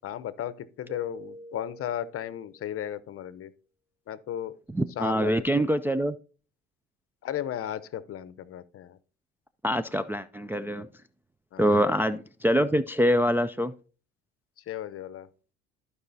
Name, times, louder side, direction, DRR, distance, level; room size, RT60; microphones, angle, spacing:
voice 1, 0.0-3.5 4.1-4.6 5.0-5.7 7.2-9.0 11.5-11.8 14.6-15.3, left 11 dB, 45° left, 0.8 m, -35 dB
Keyboard (musical), 0.9-2.9, equal, 35° right, 2.0 m, -46 dB
voice 2, 4.7-6.2 9.6-10.9 11.6-13.7, equal, 5° right, 0.3 m, -25 dB
14.5 x 4.9 x 2.7 m
hypercardioid pair, 70°, 32 cm